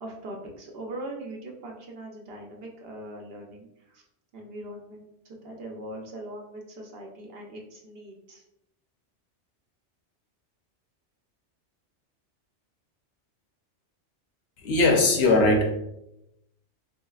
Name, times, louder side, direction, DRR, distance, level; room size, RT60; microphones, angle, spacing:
voice 1, 0.0-4.0 4.3-8.4, right 1 dB, 60° right, 0 dB, 0.7 m, -41 dB
voice 2, 14.6-15.7, left 2 dB, 65° left, 2 dB, 0.8 m, -20 dB
3.0 x 2.8 x 2.3 m, 0.83 s
omnidirectional pair, 1.2 m